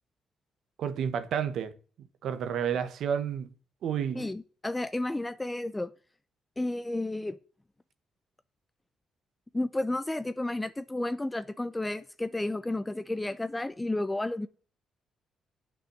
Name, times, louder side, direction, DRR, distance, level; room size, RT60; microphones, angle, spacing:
voice 1, 0.8-3.5 3.8-4.2, right 8 dB, 70° right, 1.3 m, -31 dB
voice 2, 4.2-5.9 6.6-7.4 9.5-14.5, left 2 dB, 15° left, 0.7 m, -32 dB
9.0 x 6.2 x 8.1 m
cardioid pair, 90°, 0 cm